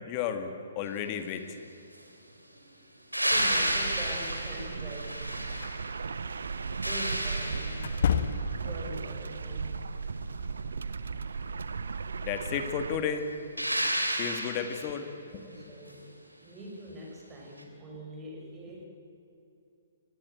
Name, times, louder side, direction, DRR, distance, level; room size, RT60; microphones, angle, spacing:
voice 1, 0.0-1.6 12.3-13.3 14.2-15.1, left 8 dB, 30° left, 7 dB, 2.0 m, -33 dB
sound 1, 3.1-6.0 6.4-8.2 13.6-15.0 17.6-17.7, right 1 dB, 90° right, 3.3 m, -31 dB
voice 2, 3.2-5.6 6.8-9.8 15.3-16.1 16.4-18.8, right 1 dB, 15° right, -1 dB, 6.2 m, -44 dB
sound 2, 3.3-13.0, right 5 dB, 65° right, 1.0 m, -36 dB
sound 3, 5.6-5.7 7.8-8.8, left 7 dB, 50° left, 1.4 m, -29 dB
23.5 x 20.0 x 8.0 m, 2.8 s
figure-of-eight pair, 125°, 0 cm